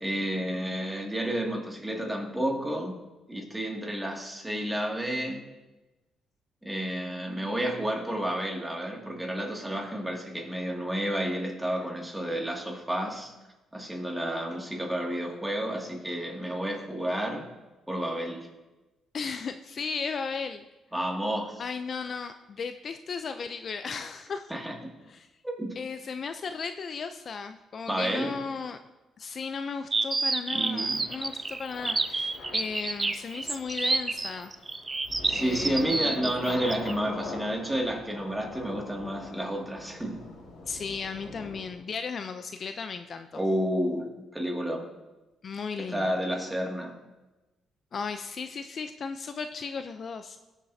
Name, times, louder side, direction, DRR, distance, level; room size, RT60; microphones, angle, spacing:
voice 1, 0.0-3.0 3.3-5.4 6.6-13.3 13.7-17.5 17.9-18.5 20.9-21.6 24.5-24.8 25.4-25.8 27.9-28.4 30.5-31.0 35.3-40.2 43.3-44.9 45.8-46.9, right 1 dB, 5° right, 0 dB, 2.2 m, -31 dB
voice 2, 19.1-20.7 21.6-24.5 25.1-25.3 25.8-28.8 29.2-34.5 35.2-36.6 40.7-43.4 45.4-46.2 47.9-50.4, left 5 dB, 50° left, 8 dB, 0.5 m, -36 dB
sound 1, 29.9-36.9, right 3 dB, 25° right, 0.5 m, -29 dB
Thunder / Rain, 30.9-41.7, left 2 dB, 85° left, 2.1 m, -43 dB
17.5 x 7.3 x 2.7 m, 1.1 s
cardioid pair, 90°, 0 cm